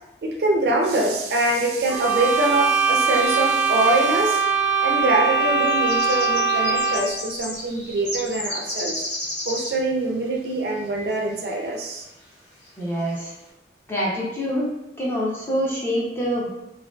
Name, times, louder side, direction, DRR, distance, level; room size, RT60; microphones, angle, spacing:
voice 1, 0.2-4.5 4.8-9.1 9.5-12.0, right 2 dB, 65° right, 1 dB, 0.4 m, -24 dB
sound 1, 1.9-7.2, right 5 dB, 65° left, 0.9 m, -21 dB
sound 2, 3.7-4.4 5.2-9.9 10.8-10.9 11.4-11.5 11.9-12.2 12.6-12.7 13.0-13.2, left 1 dB, 85° left, 1.3 m, -32 dB
voice 2, 12.8-13.3 13.9-14.7 15.0-16.5, equal, 15° left, -6 dB, 0.5 m, -25 dB
2.4 x 2.3 x 2.2 m, 0.87 s
head